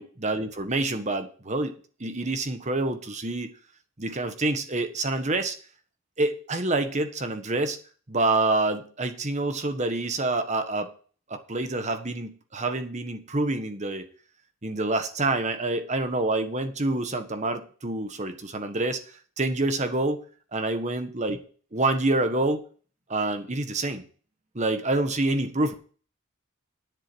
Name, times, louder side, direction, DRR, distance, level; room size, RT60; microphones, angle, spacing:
voice 1, 0.0-1.7 2.0-3.5 4.0-5.5 6.2-7.8 8.1-10.9 11.3-14.1 14.6-19.0 19.4-20.2 20.5-21.4 21.7-22.6 23.1-24.0 24.5-25.8, right 2 dB, 35° right, 8 dB, 1.4 m, -27 dB
10.5 x 7.6 x 6.2 m, 0.41 s
head